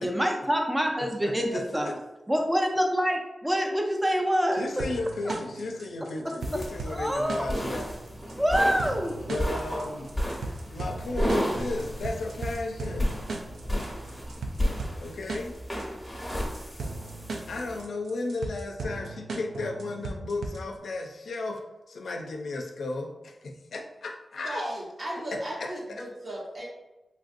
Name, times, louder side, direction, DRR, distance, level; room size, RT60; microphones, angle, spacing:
voice 1, 0.0-1.9 2.3-4.8 6.9-7.4 8.4-9.1, equal, 15° right, 2 dB, 0.6 m, -26 dB
voice 2, 1.2-2.0 4.5-7.9 8.4-8.5 9.3-10.1 10.7-13.2 15.0-15.6 17.5-21.6 21.9-24.6 25.6-25.7 26.0-26.1, left 2 dB, 80° left, 2 dB, 0.4 m, -34 dB
sound 1, 4.8-20.8, right 3 dB, 90° right, 0.3 m, -38 dB
sound 2, 6.4-17.8, equal, 5° left, 1.1 m, -33 dB
sound 3, 6.6-14.8, right 1 dB, 70° right, 1.0 m, -50 dB
voice 3, 24.4-26.6, right 1 dB, 50° right, -4 dB, 1.1 m, -35 dB
3.1 x 2.5 x 2.5 m, 1.0 s
cardioid pair, 40°, 0 cm